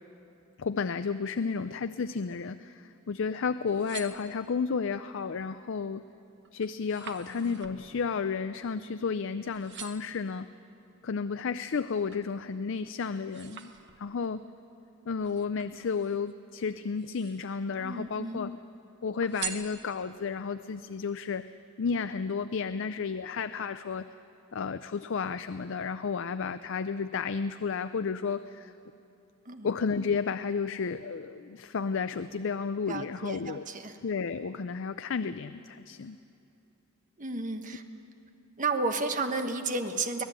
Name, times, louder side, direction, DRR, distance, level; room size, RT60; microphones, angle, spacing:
voice 1, 0.6-6.0 6.5-10.5 11.0-13.7 14.0-14.4 15.1-18.6 19.0-21.5 21.8-24.1 24.5-28.7 29.6-33.7 34.0-36.2, left 5 dB, 60° left, 12 dB, 0.5 m, -32 dB
sound 1, 3.5-4.8 5.4-5.8 6.1-9.2 9.5-10.2 10.8-12.3 12.7-14.3 15.2-16.3 16.9-17.7 18.0-18.7 19.2-20.3 20.8-20.9, right 7 dB, 55° right, 1.4 m, -45 dB
voice 2, 17.8-18.4 29.4-29.7 32.9-34.0 37.2-37.8 38.6-40.2, right 3 dB, 35° right, 7 dB, 1.3 m, -32 dB
24.5 x 18.0 x 9.0 m, 2.8 s
head